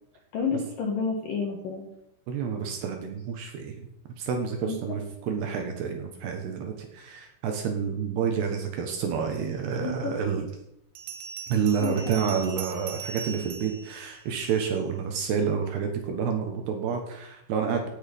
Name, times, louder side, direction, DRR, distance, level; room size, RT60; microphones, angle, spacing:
voice 1, 0.3-1.9 4.6-5.0 9.8-10.1 11.8-12.3, left 5 dB, 65° left, 1 dB, 2.3 m, -30 dB
voice 2, 2.3-3.9 4.2-10.5 11.5-17.9, right 6 dB, 65° right, 4 dB, 3.0 m, -29 dB
Bell, 11.0-14.8, right 7 dB, 90° right, 3.8 m, -40 dB
16.5 x 8.2 x 5.4 m, 0.80 s
omnidirectional pair, 5.9 m